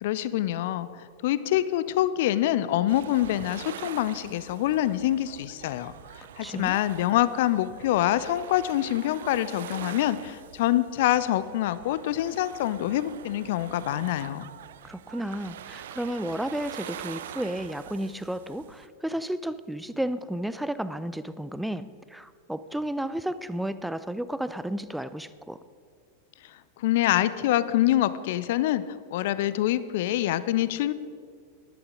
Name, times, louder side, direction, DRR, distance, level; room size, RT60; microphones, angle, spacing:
voice 1, 0.0-5.9 6.4-14.5 26.4-30.9, left 13 dB, 50° left, 16 dB, 0.5 m, -26 dB
sound 1, 2.9-18.9, right 11 dB, 60° right, 0.4 m, -44 dB
voice 2, 6.4-6.8 14.8-25.6, right 1 dB, 5° right, 14 dB, 0.5 m, -32 dB
13.0 x 11.5 x 5.1 m, 2.1 s
figure-of-eight pair, 90°, 0 cm